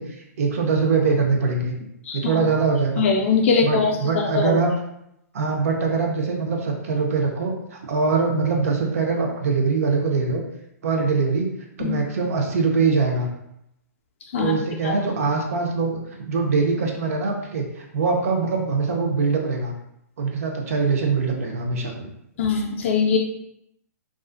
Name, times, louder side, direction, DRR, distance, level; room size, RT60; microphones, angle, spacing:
voice 1, 0.0-1.7 2.1-3.1 3.6-4.7 5.3-10.4 10.8-11.5 11.8-13.3 14.4-16.0 16.2-19.7 20.2-22.1, right 4 dB, 60° right, 2 dB, 0.6 m, -23 dB
voice 2, 2.0-2.4 3.0-4.6 11.8-11.9 14.3-14.5 14.8-14.9 22.4-23.2, left 5 dB, 50° left, 0 dB, 0.4 m, -21 dB
2.4 x 2.4 x 2.4 m, 0.79 s
hypercardioid pair, 155°, 9 cm